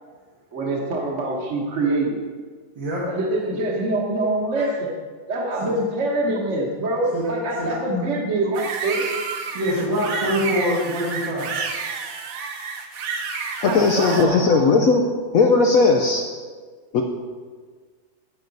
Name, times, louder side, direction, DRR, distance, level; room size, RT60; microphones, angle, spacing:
voice 1, 0.5-2.2 3.0-4.9 5.3-9.1 13.6-14.9, right 2 dB, 45° right, -1 dB, 1.3 m, -25 dB
voice 2, 2.8-3.1 4.6-4.7 5.6-5.7 7.1-7.2 7.6-7.7 9.5-11.5, equal, 75° right, -6 dB, 2.4 m, -24 dB
sound 1, 8.5-14.2, right 5 dB, 60° right, 1.0 m, -30 dB
voice 3, 13.6-15.0 15.3-16.2 16.9-17.0, left 4 dB, 70° left, 2 dB, 0.8 m, -17 dB
8.8 x 8.6 x 3.9 m, 1.5 s
omnidirectional pair, 2.1 m